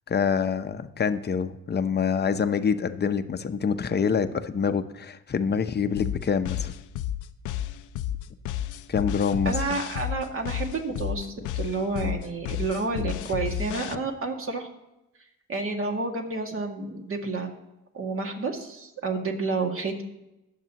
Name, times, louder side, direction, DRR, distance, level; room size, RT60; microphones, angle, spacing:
voice 1, 0.1-6.7 8.9-9.7, left 6 dB, 35° left, 10 dB, 0.8 m, -26 dB
sound 1, 6.0-14.0, left 11 dB, 85° left, 0.6 m, -31 dB
voice 2, 9.5-14.7 15.5-17.5 17.9-20.0, right 3 dB, 45° right, 2 dB, 2.1 m, -30 dB
21.0 x 7.4 x 3.0 m, 0.94 s
cardioid pair, 90°, 30 cm